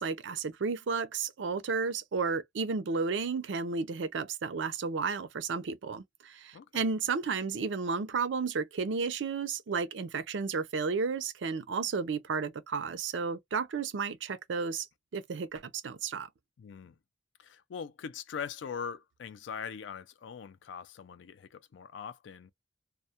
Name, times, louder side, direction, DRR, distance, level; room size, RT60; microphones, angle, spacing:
voice 1, 0.0-14.9 15.1-16.3, right 5 dB, 80° right, 0.5 m, -32 dB
voice 2, 16.6-17.0 17.4-22.5, left 6 dB, 80° left, 0.4 m, -42 dB
2.2 x 2.1 x 2.7 m
head